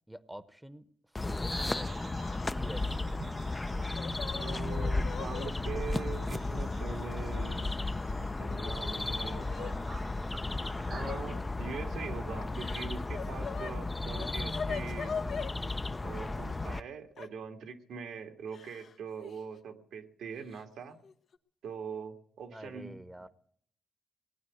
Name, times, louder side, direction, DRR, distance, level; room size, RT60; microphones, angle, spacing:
voice 1, 0.1-3.0 4.5-5.1 22.5-23.3, right 1 dB, 10° right, 14 dB, 1.0 m, -47 dB
sound 1, 1.2-16.8, left 2 dB, 25° left, 0.6 m, -34 dB
sound 2, 1.5-11.2, right 5 dB, 50° right, 0.6 m, -50 dB
Yell / Crying sobbing, 2.2-2.5 2.8-3.0 3.7-5.5 6.5-6.6 7.6-8.1 8.4-9.7 10.9-11.2 12.4-13.7 14.0-15.5 17.2-17.3 18.5-18.9 19.2-19.4 20.5-20.6 21.0-21.3, left 6 dB, 65° left, 0.9 m, -41 dB
voice 2, 4.3-7.7 8.4-9.9 10.9-15.1 16.0-21.0 21.6-23.0, right 6 dB, 80° right, 5 dB, 1.7 m, -42 dB
19.0 x 9.2 x 8.2 m, 0.63 s
cardioid pair, 65°, 0 cm